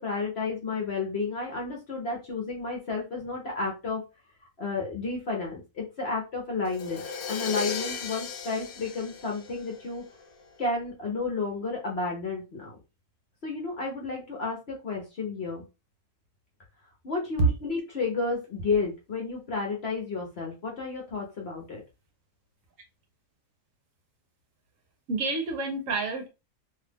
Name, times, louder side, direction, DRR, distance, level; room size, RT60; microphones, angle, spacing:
voice 1, 0.0-4.0 4.6-10.0 10.6-12.8 13.4-15.7 17.0-21.8, left 4 dB, 45° left, 1.0 m, -31 dB
Crash cymbal, 6.6-10.4, left 6 dB, 70° left, 1.0 m, -36 dB
voice 2, 25.1-26.3, right 3 dB, 60° right, 1.0 m, -27 dB
2.8 x 2.4 x 3.4 m
omnidirectional pair, 1.7 m